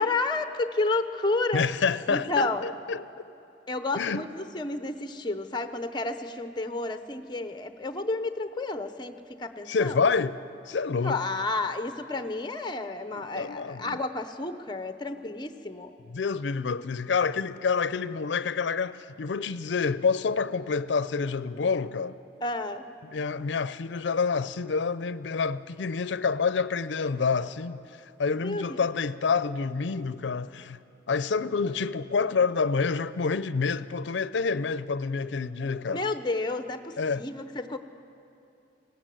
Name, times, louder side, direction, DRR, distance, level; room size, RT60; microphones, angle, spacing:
voice 1, 0.0-1.6 2.1-2.7 3.7-10.1 11.0-15.9 22.4-22.9 28.4-28.8 35.9-37.8, left 2 dB, 25° left, 0.7 m, -31 dB
voice 2, 1.5-3.0 4.0-4.2 9.7-10.4 10.7-11.2 13.3-14.0 16.1-22.2 23.1-27.8 28.2-30.8 31.1-36.0 37.0-37.2, left 5 dB, 80° left, 0.5 m, -28 dB
19.5 x 17.0 x 7.7 m
head